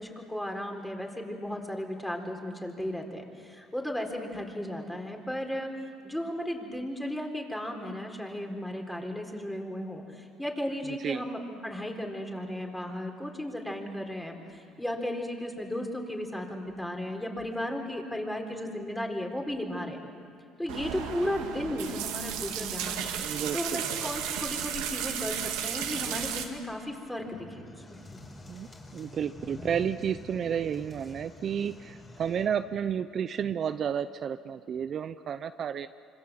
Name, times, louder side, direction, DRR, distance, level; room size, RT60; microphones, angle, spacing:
voice 1, 0.0-20.0 20.6-23.0 23.5-28.2, left 1 dB, 5° left, 2 dB, 4.0 m, -35 dB
voice 2, 10.9-11.2 23.1-23.8 28.5-35.9, right 8 dB, 50° right, 11 dB, 0.6 m, -32 dB
sound 1, 20.7-26.5, right 9 dB, 90° right, 2.3 m, -34 dB
sound 2, 27.2-32.5, left 2 dB, 25° left, 5.1 m, -47 dB
26.5 x 25.0 x 7.6 m, 2.5 s
supercardioid pair, 90°, 0 cm